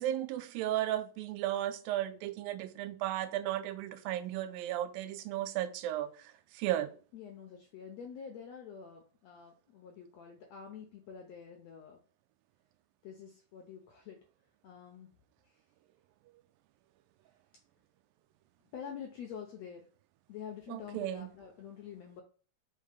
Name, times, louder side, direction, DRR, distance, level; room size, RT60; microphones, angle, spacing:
voice 1, 0.0-6.1 6.5-6.9 20.7-21.3, right 13 dB, 85° right, 2.3 m, -34 dB
voice 2, 7.1-12.0 13.0-14.2 14.6-15.1 15.5-15.6 18.7-19.9 20.3-22.2, left 7 dB, 75° left, 1.6 m, -47 dB
5.7 x 3.7 x 5.0 m
omnidirectional pair, 4.1 m